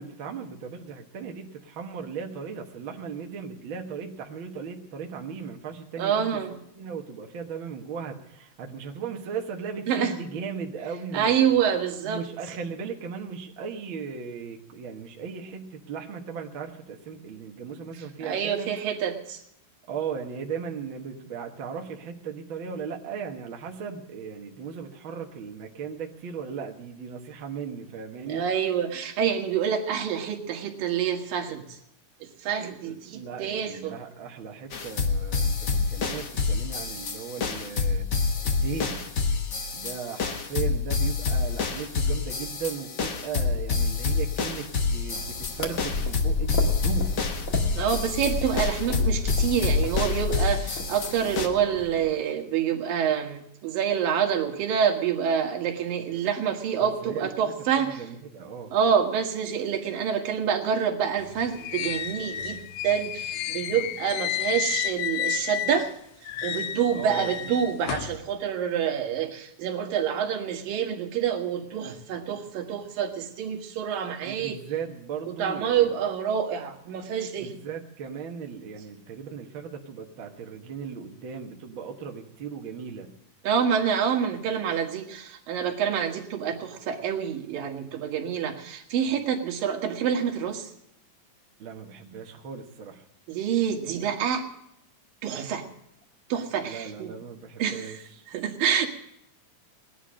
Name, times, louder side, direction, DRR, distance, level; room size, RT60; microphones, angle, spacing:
voice 1, 0.0-11.6 12.0-18.7 19.9-28.7 32.8-38.1 38.4-39.0 39.7-47.2 56.8-58.7 66.9-67.3 74.2-76.1 77.4-83.1 91.6-93.0 96.6-98.2, right 6 dB, 50° right, 2 dB, 1.6 m, -37 dB
voice 2, 6.0-6.6 9.9-10.1 11.1-12.2 18.2-19.4 28.3-31.8 32.2-33.9 47.7-58.1 58.7-65.9 66.4-74.6 75.3-77.5 83.4-90.7 93.3-94.5 95.2-95.6 96.3-97.1 97.6-98.0 98.3-98.9, right 8 dB, 85° right, 5 dB, 3.4 m, -27 dB
sound 1, 34.7-51.5, left 4 dB, 50° left, 1.2 m, -28 dB
sound 2, 45.1-52.1, left 3 dB, 35° left, 1.6 m, -31 dB
sound 3, 61.2-65.9 66.2-68.2, left 11 dB, 80° left, 1.5 m, -32 dB
18.5 x 11.0 x 6.3 m, 0.78 s
omnidirectional pair, 3.9 m